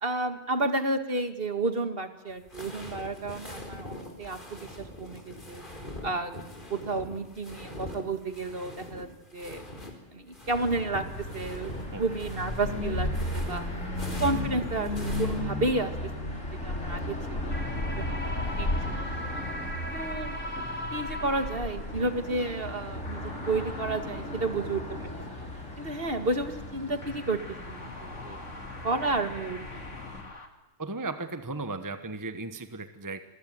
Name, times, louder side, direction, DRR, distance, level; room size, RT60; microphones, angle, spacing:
voice 1, 0.0-5.6 6.0-6.3 6.7-9.1 9.3-9.7 10.1-11.7 12.0-13.7 14.2-15.9 16.3-16.4 16.6-17.6 18.0-18.3 18.6-19.1 19.9-20.4 20.9-25.5 25.8-27.4 27.7-28.4 28.8-29.6 29.9-30.0, right 2 dB, 50° right, 8 dB, 2.2 m, -31 dB
sound 1, 2.3-9.9 10.2-15.4, left 1 dB, 40° left, 4.4 m, -43 dB
sound 2, 10.5-30.2, left 1 dB, 85° left, 5.8 m, -35 dB
sound 3, 17.5-22.0 23.1-24.4 27.0-30.5, left 1 dB, 70° left, 3.2 m, -41 dB
voice 2, 30.8-33.2, right 3 dB, 15° right, 9 dB, 1.2 m, -36 dB
27.0 x 21.5 x 9.4 m, 0.90 s
omnidirectional pair, 1.3 m